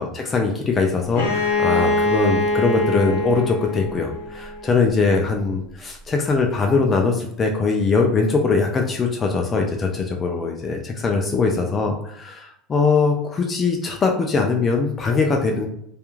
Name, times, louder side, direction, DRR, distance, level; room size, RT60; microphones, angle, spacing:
voice 1, 0.0-15.7, left 4 dB, 25° left, 2 dB, 0.3 m, -21 dB
Bowed string instrument, 1.1-4.8, left 2 dB, 90° left, 0.6 m, -23 dB
2.3 x 2.1 x 3.0 m, 0.74 s
supercardioid pair, 135°, 0 cm